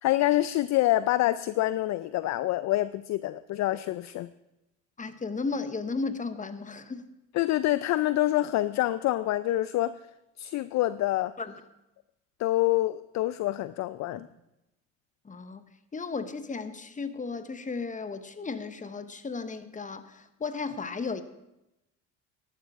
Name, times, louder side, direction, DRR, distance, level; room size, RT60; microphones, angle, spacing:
voice 1, 0.0-4.3 7.3-9.9 10.4-11.3 12.4-14.3, left 15 dB, 45° left, 16 dB, 0.4 m, -26 dB
voice 2, 5.0-7.1 11.4-11.5 15.2-15.7 15.9-21.2, left 4 dB, 20° left, 11 dB, 1.0 m, -34 dB
13.0 x 11.5 x 3.6 m, 0.91 s
hypercardioid pair, 65°, 38 cm